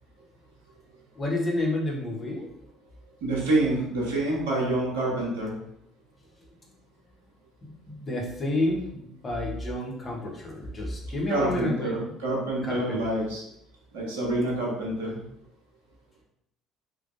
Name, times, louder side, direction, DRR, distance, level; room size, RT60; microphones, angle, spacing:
voice 1, 1.2-2.5 7.6-12.0 12.7-13.0, left 1 dB, 30° left, -1 dB, 1.1 m, -30 dB
voice 2, 3.2-5.5 11.3-13.4 13.9-15.2, right 2 dB, 65° right, -3 dB, 0.9 m, -27 dB
3.6 x 3.1 x 2.6 m, 0.74 s
figure-of-eight pair, 55°, 0 cm